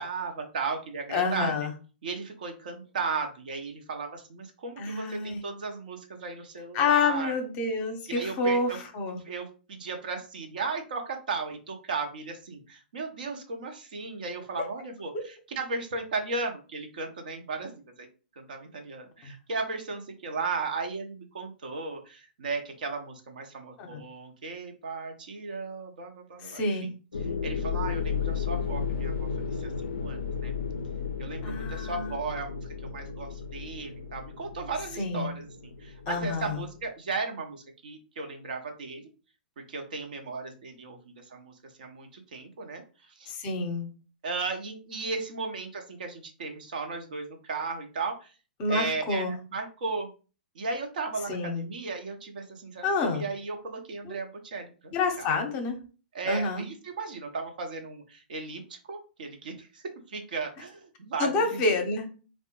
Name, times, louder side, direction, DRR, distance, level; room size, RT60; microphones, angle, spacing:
voice 1, 0.0-1.5 2.0-7.3 8.1-8.8 9.2-18.1 18.4-26.9 27.4-29.1 29.5-30.5 31.2-39.1 39.6-43.3 44.2-48.3 48.7-50.1 50.5-54.9 55.2-55.3 56.1-61.6, right 4 dB, 60° right, 4 dB, 0.7 m, -35 dB
voice 2, 1.1-1.7 4.8-5.4 6.7-9.2 14.6-14.7 15.1-15.2 23.8-24.0 26.4-26.9 31.4-32.1 35.0-35.3 36.1-36.6 43.3-43.9 48.6-49.4 51.3-51.6 52.8-53.2 54.0-54.2 54.9-55.8 56.3-56.6 61.2-62.1, left 3 dB, 35° left, 4 dB, 0.7 m, -28 dB
sound 1, 27.1-36.9, left 6 dB, 80° left, 0.3 m, -34 dB
3.3 x 2.1 x 2.9 m, 0.35 s
figure-of-eight pair, 110°, 5 cm